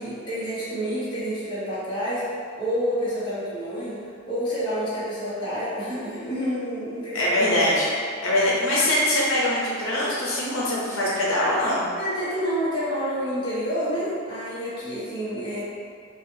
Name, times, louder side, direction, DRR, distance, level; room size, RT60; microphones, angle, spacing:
voice 1, 0.0-2.2 2.6-4.0 4.3-7.8 12.0-15.6, equal, 25° left, -11 dB, 1.2 m, -28 dB
voice 2, 7.1-7.9 8.2-11.8, left 1 dB, 85° left, -6 dB, 0.7 m, -23 dB
4.4 x 2.4 x 2.7 m, 2.3 s
head